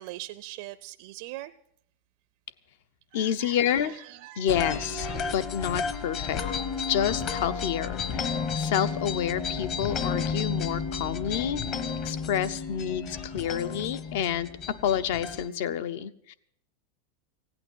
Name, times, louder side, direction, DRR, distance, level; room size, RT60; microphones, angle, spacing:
voice 1, 0.0-1.5 3.1-4.5, right 17 dB, 50° right, 12 dB, 0.5 m, -42 dB
voice 2, 3.1-4.0 4.4-6.4 6.9-11.6 12.0-14.5 14.8-16.3, left 9 dB, 60° left, 14 dB, 0.8 m, -29 dB
sound 1, 4.5-15.5, left 5 dB, 35° left, 1.0 m, -32 dB
16.0 x 8.9 x 8.0 m, 0.71 s
supercardioid pair, 160°, 0 cm